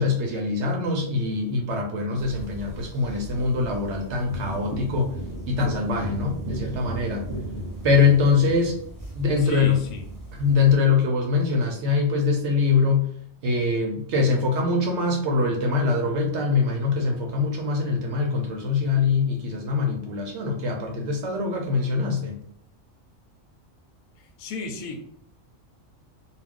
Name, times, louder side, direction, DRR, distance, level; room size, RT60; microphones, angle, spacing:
voice 1, 0.0-5.1 5.5-7.3 7.8-8.8 9.1-9.8 10.4-13.1 13.4-22.3, left 4 dB, 65° right, 1 dB, 0.8 m, -23 dB
sound 1, 2.2-10.7, right 1 dB, 15° right, 1.1 m, -36 dB
voice 2, 9.4-10.1 24.2-25.0, left 3 dB, 85° left, 4 dB, 1.0 m, -34 dB
2.4 x 2.3 x 3.5 m, 0.66 s
omnidirectional pair, 1.4 m